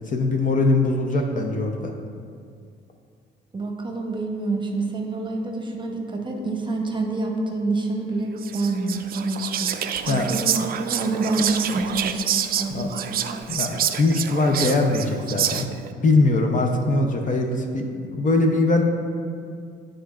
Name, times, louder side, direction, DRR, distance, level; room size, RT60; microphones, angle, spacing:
voice 1, 0.1-1.9 10.0-10.4 12.7-12.9 13.5-15.7 16.0-18.9, left 2 dB, 40° left, 3 dB, 0.6 m, -21 dB
voice 2, 3.5-9.8 10.1-12.2 12.6-13.2, right 2 dB, 25° right, 1 dB, 0.9 m, -27 dB
Whispering, 8.4-15.9, right 9 dB, 50° right, 0.4 m, -27 dB
11.0 x 3.7 x 2.4 m, 2.2 s
cardioid pair, 90°, 20 cm